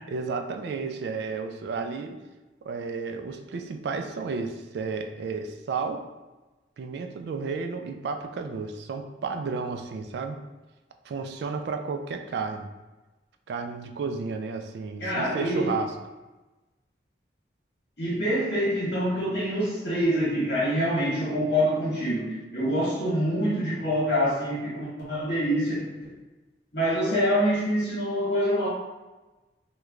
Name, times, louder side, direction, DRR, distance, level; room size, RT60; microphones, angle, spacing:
voice 1, 0.1-2.2 2.6-6.1 6.8-10.4 11.1-12.7 13.5-16.0, right 4 dB, 70° right, 6 dB, 0.3 m, -32 dB
voice 2, 15.0-15.7 18.0-26.1 26.7-28.7, equal, 60° left, -7 dB, 1.3 m, -26 dB
3.0 x 2.2 x 3.6 m, 1.1 s
head